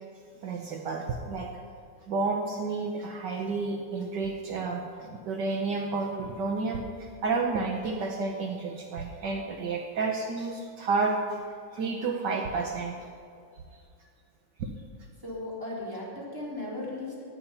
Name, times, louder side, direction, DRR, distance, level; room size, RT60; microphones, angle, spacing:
voice 1, 0.4-1.5 2.1-11.4 11.7-13.0 14.6-14.7, right 3 dB, 70° right, 2 dB, 1.6 m, -31 dB
voice 2, 15.2-17.2, left 2 dB, 10° right, -6 dB, 4.0 m, -36 dB
17.5 x 10.5 x 5.7 m, 2.3 s
omnidirectional pair, 2.1 m